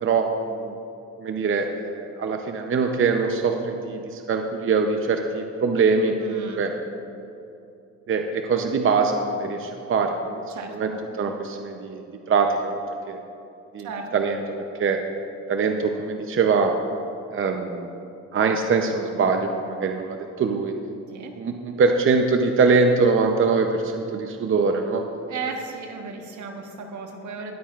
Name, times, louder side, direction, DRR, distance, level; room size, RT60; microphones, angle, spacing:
voice 1, 0.0-0.7 1.2-6.7 8.1-10.4 10.7-10.9 11.1-12.8 13.1-13.2 13.7-14.4 14.7-15.0 15.5-16.7 17.3-17.9 18.3-20.7 21.4-25.0, right 4 dB, 45° right, 4 dB, 0.7 m, -23 dB
voice 2, 6.2-6.6 10.5-11.0 13.8-14.1 19.1-19.3 21.1-21.4 25.3-27.6, right 4 dB, 75° right, 2 dB, 1.3 m, -35 dB
19.0 x 8.5 x 2.5 m, 2.7 s
cardioid pair, 90°, 30 cm